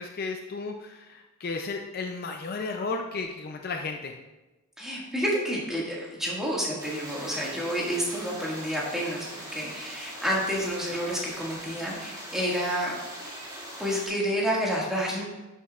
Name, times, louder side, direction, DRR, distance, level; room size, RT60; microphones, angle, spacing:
voice 1, 0.0-4.2, left 3 dB, 45° left, 3 dB, 0.5 m, -34 dB
voice 2, 4.8-13.0 13.8-15.3, equal, ahead, -5 dB, 1.9 m, -29 dB
sound 1, 6.8-14.1, right 1 dB, 20° right, 2.5 m, -41 dB
11.0 x 7.2 x 2.4 m, 1.1 s
head